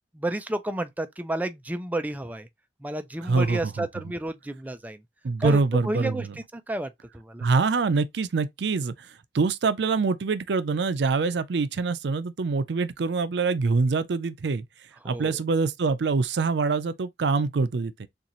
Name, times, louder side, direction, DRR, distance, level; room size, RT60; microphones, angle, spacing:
voice 1, 0.1-2.5 2.8-5.0 5.4-5.6 5.8-6.3 6.5-7.4 15.0-15.4, right 1 dB, 10° right, 0.5 m, -31 dB
voice 2, 3.2-3.9 5.2-6.3 7.4-14.6 15.0-18.1, right 4 dB, 70° right, 0.5 m, -25 dB
6.8 x 2.4 x 3.0 m
head